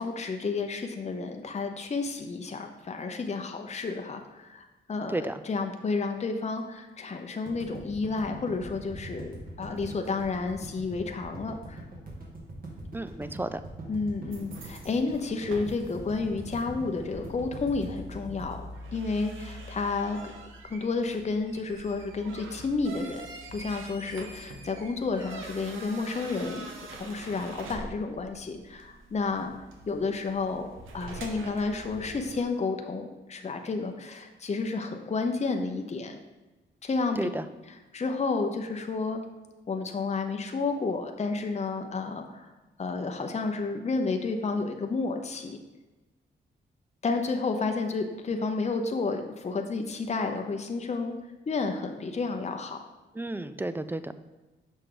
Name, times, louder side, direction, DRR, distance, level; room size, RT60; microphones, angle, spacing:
voice 1, 0.0-11.8 13.9-18.6 18.9-20.3 20.7-26.7 26.9-29.5 29.9-30.7 30.9-36.2 36.8-37.3 37.7-39.2 39.7-42.5 42.8-45.6 47.0-51.1 51.5-52.8, left 4 dB, 35° left, 5 dB, 0.7 m, -31 dB
sound 1, 7.5-19.6, right 2 dB, 45° right, 2.1 m, -42 dB
voice 2, 12.9-13.6 37.2-37.4 53.2-54.1, right 2 dB, 10° right, 12 dB, 0.4 m, -32 dB
sound 2, 14.3-32.4, right 2 dB, 85° right, 0.9 m, -45 dB
6.6 x 5.2 x 3.8 m, 1.2 s
cardioid pair, 60°, 20 cm